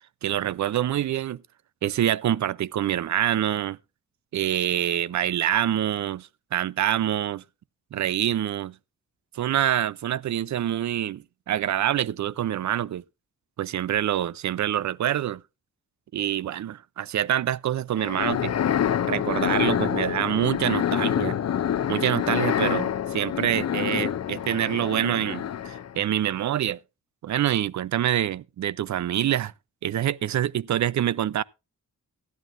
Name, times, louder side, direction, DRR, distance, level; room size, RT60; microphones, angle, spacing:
voice 1, 0.2-1.4 1.8-3.8 4.3-7.4 7.9-8.8 9.3-13.0 13.6-15.4 16.1-18.6 19.0-21.4 21.9-26.8 27.2-29.5 29.8-31.4, right 11 dB, 60° right, 0.5 m, -26 dB
sound 1, 18.0-26.0, left 9 dB, 55° left, 0.5 m, -27 dB
15.5 x 11.0 x 2.5 m
wide cardioid pair, 120°, 32 cm